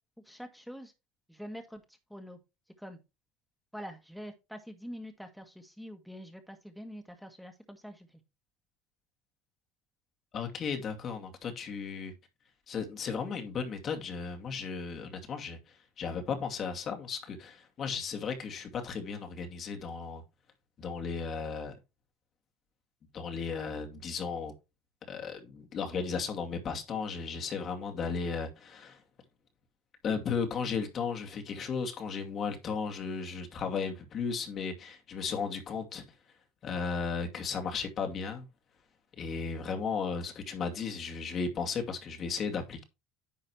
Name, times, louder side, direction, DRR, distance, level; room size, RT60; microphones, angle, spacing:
voice 1, 0.2-0.9 1.3-1.8 2.1-2.4 2.8-3.0 3.7-8.2, equal, ahead, 2.0 m, -45 dB
voice 2, 10.3-12.1 12.7-20.2 20.8-21.7 23.1-24.5 25.1-29.0 30.0-36.0 36.6-38.5 39.2-42.8, left 5 dB, 45° left, 2.4 m, -35 dB
10.5 x 6.4 x 3.2 m
hypercardioid pair, 70°, 0 cm